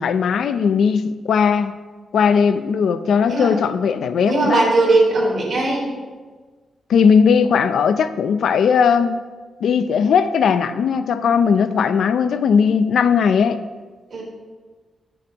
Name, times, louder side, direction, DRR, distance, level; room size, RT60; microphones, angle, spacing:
voice 1, 0.0-1.7 2.1-4.6 6.9-9.2 9.6-13.6, left 6 dB, 70° left, 12 dB, 0.5 m, -18 dB
voice 2, 4.3-5.9 11.5-11.8 14.1-14.2, right 2 dB, 45° right, -4 dB, 3.7 m, -18 dB
20.5 x 7.2 x 2.9 m, 1.4 s
wide cardioid pair, 175°, 0 cm